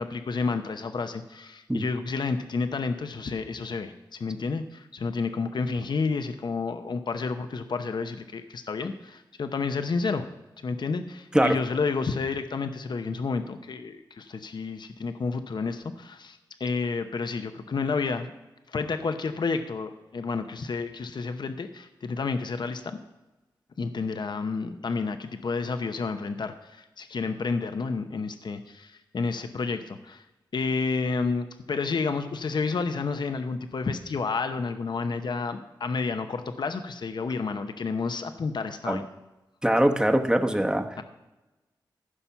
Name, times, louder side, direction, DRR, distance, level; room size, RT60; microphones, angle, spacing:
voice 1, 0.0-10.3 10.6-18.3 18.7-23.0 23.8-30.2 30.5-39.1 41.0-41.1, left 4 dB, 65° left, 8 dB, 0.8 m, -30 dB
voice 2, 39.6-40.9, right 1 dB, 10° right, 6 dB, 1.1 m, -22 dB
14.5 x 5.7 x 5.7 m, 1.0 s
cardioid pair, 60°, 8 cm